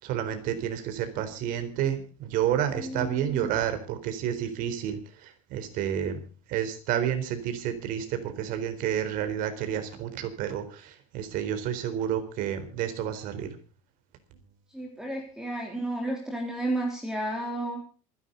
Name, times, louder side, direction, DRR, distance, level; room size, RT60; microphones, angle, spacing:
voice 1, 0.0-6.2 6.5-13.6, right 10 dB, 55° right, 9 dB, 4.1 m, -30 dB
voice 2, 2.7-3.5 14.7-17.8, right 1 dB, 5° right, 1 dB, 3.6 m, -32 dB
27.0 x 11.0 x 4.0 m, 0.36 s
cardioid pair, 150°, 17 cm